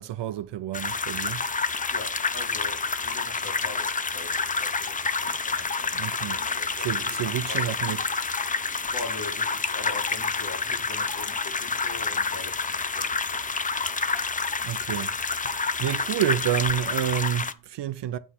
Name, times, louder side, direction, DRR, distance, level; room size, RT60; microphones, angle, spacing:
voice 1, 0.0-1.4 5.9-6.4 6.8-8.1 14.6-18.2, right 11 dB, 65° right, 0.7 m, -29 dB
sound 1, 0.7-17.5, left 4 dB, 20° left, 0.5 m, -28 dB
voice 2, 1.9-8.0 8.5-13.4, left 3 dB, 50° left, 2.1 m, -42 dB
7.9 x 4.9 x 5.7 m
cardioid pair, 125°, 45 cm